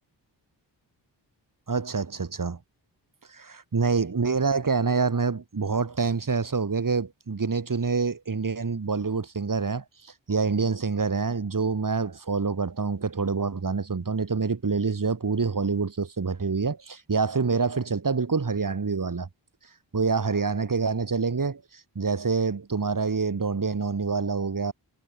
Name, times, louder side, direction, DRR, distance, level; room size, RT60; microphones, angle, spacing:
voice 1, 1.7-2.6 3.3-19.3 19.9-24.7, right 4 dB, 45° right, 5.6 m, -26 dB
wide cardioid pair, 145°, 45 cm